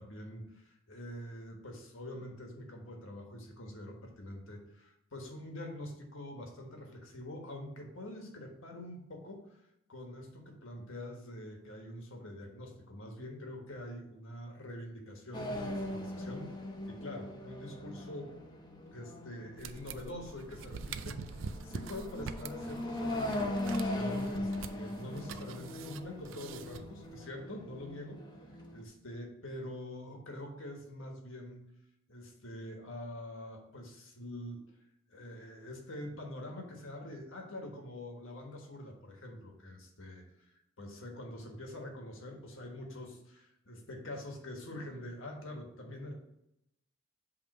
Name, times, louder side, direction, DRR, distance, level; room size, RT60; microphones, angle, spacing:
voice 1, 0.0-9.6 9.9-16.5 16.9-18.3 18.9-28.2 28.5-31.7 32.1-34.6 35.1-40.2 40.8-46.1, left 1 dB, 65° left, 2 dB, 1.5 m, -45 dB
sound 1, 15.3-28.8, left 1 dB, 20° left, 0.9 m, -39 dB
sound 2, 19.6-27.2, right 5 dB, 65° right, 0.4 m, -45 dB
7.9 x 3.6 x 5.4 m, 0.83 s
head